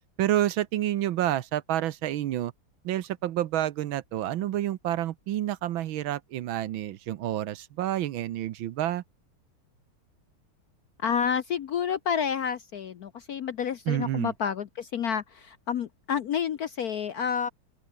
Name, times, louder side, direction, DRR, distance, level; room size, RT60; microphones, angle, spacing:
voice 1, 0.2-2.5 2.8-9.0 13.9-14.3, right 12 dB, 70° right, 1.6 m, -29 dB
voice 2, 11.0-17.5, left 7 dB, 60° left, 1.0 m, -29 dB
open air
omnidirectional pair, 2.3 m